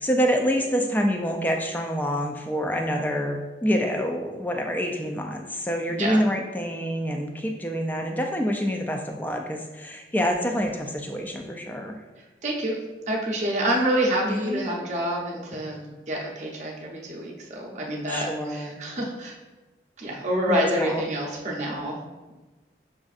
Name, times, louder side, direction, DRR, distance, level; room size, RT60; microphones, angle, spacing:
voice 1, 0.0-12.0 14.2-14.7 18.1-18.8 20.5-21.0, equal, 10° left, 2 dB, 0.3 m, -27 dB
voice 2, 12.4-12.8 13.1-19.3 20.0-22.0, right 1 dB, 40° right, -2 dB, 0.6 m, -27 dB
6.2 x 2.5 x 2.4 m, 1.2 s
head